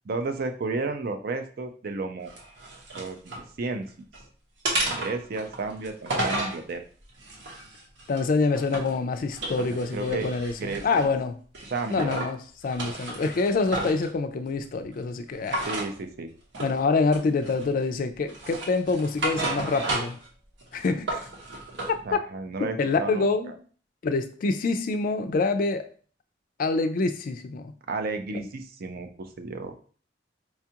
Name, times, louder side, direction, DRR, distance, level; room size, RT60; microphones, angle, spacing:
voice 1, 0.1-2.3 3.0-3.9 4.9-6.8 9.6-10.3 10.6-11.1 11.7-12.3 12.9-13.0 15.7-16.3 22.0-23.5 27.9-29.8, right 3 dB, 55° right, 7 dB, 0.5 m, -33 dB
sound 1, 2.3-3.5 3.9-4.2 4.6-6.6 7.2-9.0 9.3-11.1 11.5-12.3 12.7-14.1 15.4-15.9 16.5-16.8 17.1-17.8 18.3-20.3 20.6-21.9, right 2 dB, 85° right, 1.0 m, -32 dB
voice 2, 8.1-11.3 11.9-12.4 12.6-15.6 16.6-20.2 20.7-21.3 22.1-22.2 22.8-23.5 24.0-25.9 26.6-27.7 28.3-28.4, left 3 dB, 50° left, 8 dB, 0.4 m, -26 dB
4.3 x 2.4 x 2.8 m, 0.42 s
head